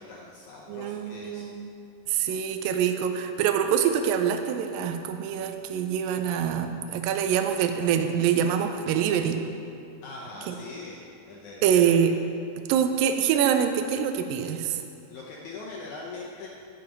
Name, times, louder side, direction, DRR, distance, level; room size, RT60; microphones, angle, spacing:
voice 1, 0.0-1.5 10.0-11.0 11.3-11.8 15.1-16.5, left 3 dB, 75° left, -3 dB, 1.8 m, -41 dB
voice 2, 0.7-1.6 2.1-9.4 10.5-10.6 11.6-12.1 12.7-14.8, right 8 dB, 80° right, 6 dB, 2.2 m, -25 dB
11.5 x 6.9 x 5.2 m, 2.5 s
omnidirectional pair, 4.4 m